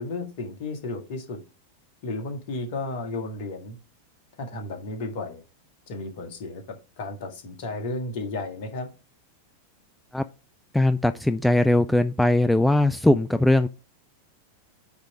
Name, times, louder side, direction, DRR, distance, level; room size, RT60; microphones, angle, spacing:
voice 1, 0.0-1.4 2.0-3.8 4.4-5.4 5.9-8.9, left 2 dB, 50° left, 5 dB, 1.8 m, -33 dB
voice 2, 10.7-13.7, left 1 dB, 5° left, 11 dB, 0.4 m, -20 dB
9.4 x 3.4 x 4.9 m, 0.31 s
figure-of-eight pair, 90°, 0 cm